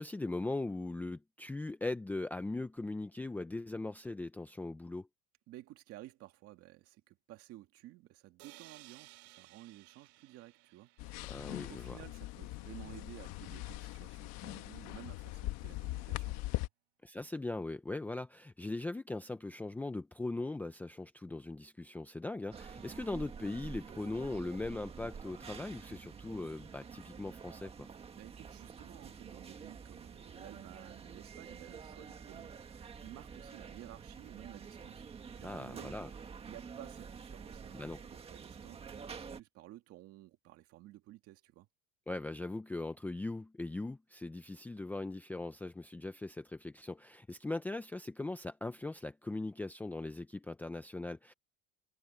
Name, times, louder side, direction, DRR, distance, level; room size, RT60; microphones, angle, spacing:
voice 1, 0.0-5.1 11.3-12.0 17.0-27.9 35.4-36.1 37.7-38.0 42.1-51.3, left 2 dB, 5° left, 0.6 m, -40 dB
voice 2, 5.5-10.9 11.2-16.7 28.2-35.1 35.4-36.0 36.4-41.7, right 16 dB, 50° right, 2.2 m, -54 dB
sound 1, 8.4-12.2, right 21 dB, 75° right, 2.1 m, -59 dB
sound 2, 11.0-16.7, left 18 dB, 60° left, 1.4 m, -41 dB
sound 3, 22.5-39.4, right 6 dB, 20° right, 1.7 m, -48 dB
cardioid pair, 160°, 30 cm